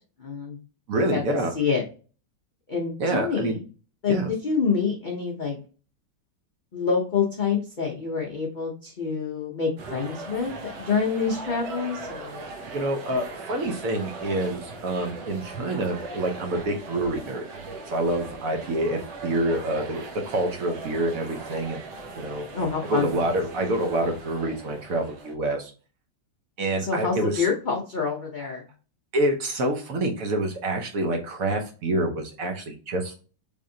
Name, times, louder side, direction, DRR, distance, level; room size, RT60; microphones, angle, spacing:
voice 1, 0.2-0.6 1.1-1.8 2.7-3.6 4.0-5.6 6.7-12.4 22.5-23.1 26.8-28.7, left 5 dB, 75° left, -2 dB, 0.4 m, -27 dB
voice 2, 0.9-1.5 3.0-3.6 4.1-4.3 12.7-17.4 17.9-21.8 22.2-22.5 22.8-25.7 26.6-27.5 29.1-33.2, right 1 dB, 60° right, 4 dB, 1.0 m, -27 dB
sound 1, 9.8-25.3, right 3 dB, 80° right, 1.4 m, -39 dB
3.5 x 3.4 x 2.6 m, 0.36 s
omnidirectional pair, 1.9 m